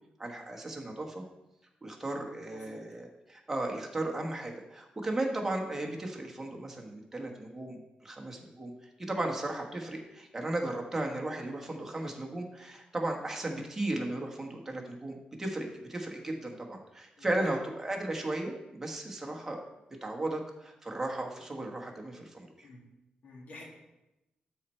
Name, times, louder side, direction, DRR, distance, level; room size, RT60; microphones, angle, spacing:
voice 1, 0.2-1.2 1.8-8.7 9.1-19.6 20.0-22.7, right 2 dB, 15° right, 0 dB, 1.3 m, -35 dB
voice 2, 23.2-23.6, left 2 dB, 65° left, 0 dB, 1.8 m, -49 dB
12.5 x 4.4 x 4.4 m, 0.93 s
wide cardioid pair, 160°, 3 cm